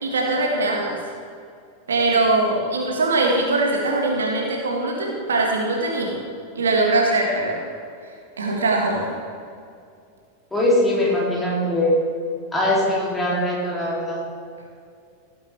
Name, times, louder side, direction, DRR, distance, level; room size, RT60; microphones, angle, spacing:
voice 1, 0.0-1.0 1.9-6.2 6.5-7.6 8.4-9.0, right 2 dB, 70° right, -1 dB, 1.8 m, -21 dB
voice 2, 10.5-12.0 12.5-14.3, left 1 dB, 5° left, -6 dB, 2.9 m, -21 dB
17.0 x 7.3 x 3.4 m, 2.4 s
figure-of-eight pair, 90°, 0 cm